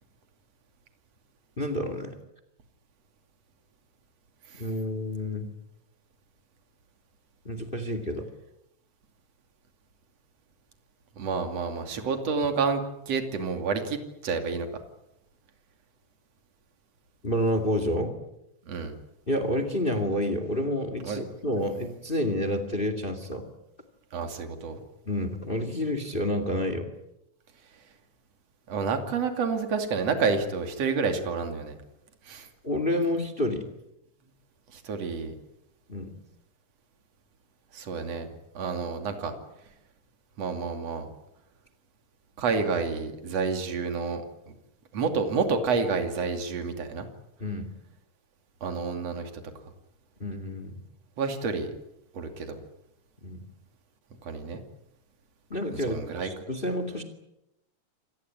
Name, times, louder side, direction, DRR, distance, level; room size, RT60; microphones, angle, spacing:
voice 1, 1.6-2.2 4.6-5.5 7.4-8.2 17.2-18.2 19.3-23.5 25.1-26.9 32.6-33.6 35.9-36.1 47.4-47.7 50.2-50.8 53.2-53.5 55.5-57.0, left 1 dB, 20° left, 10 dB, 2.2 m, -29 dB
voice 2, 11.2-14.7 18.7-18.9 21.0-21.2 24.1-24.8 28.7-31.8 32.3-32.5 34.7-35.3 37.7-38.3 38.6-39.3 40.4-41.1 42.4-44.2 44.9-47.1 48.6-49.4 51.2-51.7 52.1-52.6 54.2-54.6 55.9-56.3, right 5 dB, 50° right, 6 dB, 3.6 m, -29 dB
27.0 x 18.5 x 9.6 m, 0.87 s
omnidirectional pair, 3.7 m